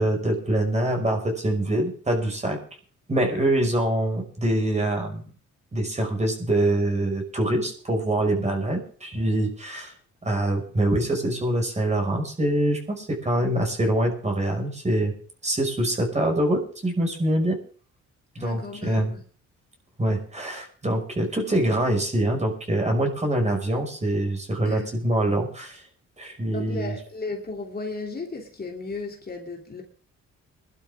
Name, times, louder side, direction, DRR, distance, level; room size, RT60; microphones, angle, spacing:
voice 1, 0.0-2.6 3.1-5.2 5.7-9.9 10.2-15.1 15.4-17.6 18.4-19.1 20.0-25.8 26.2-26.9, right 1 dB, 20° right, 5.6 m, -24 dB
voice 2, 18.4-19.2 24.6-24.9 26.5-29.8, left 3 dB, 30° left, 3.0 m, -35 dB
22.5 x 12.0 x 3.6 m
cardioid pair, 90°, 30 cm